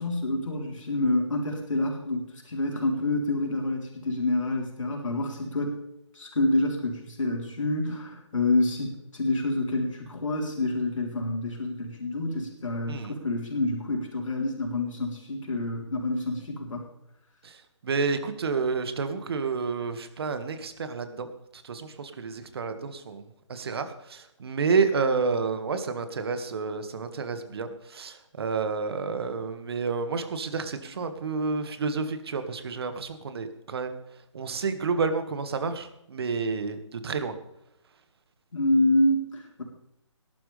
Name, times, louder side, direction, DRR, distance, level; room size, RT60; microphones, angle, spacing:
voice 1, 0.0-5.8 6.1-16.8 38.5-39.6, left 2 dB, 80° left, 0 dB, 3.8 m, -27 dB
voice 2, 17.4-34.0 34.3-37.3, right 4 dB, 50° right, 8 dB, 2.0 m, -30 dB
18.5 x 12.5 x 3.5 m, 0.80 s
hypercardioid pair, 155°, 16 cm